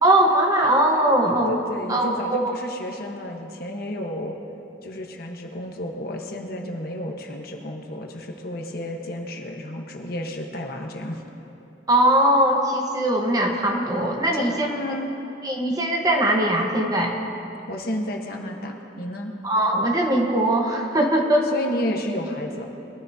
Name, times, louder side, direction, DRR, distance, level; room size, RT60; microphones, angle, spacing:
voice 1, 0.0-1.6 1.9-2.4 11.9-14.7 15.4-17.2 19.4-21.5, right 1 dB, 20° right, 1 dB, 1.1 m, -20 dB
voice 2, 1.5-4.4 4.8-11.2 14.3-15.1 17.7-19.3 21.5-22.7, left 1 dB, 55° left, 1 dB, 1.2 m, -31 dB
22.0 x 13.5 x 2.8 m, 2.9 s
head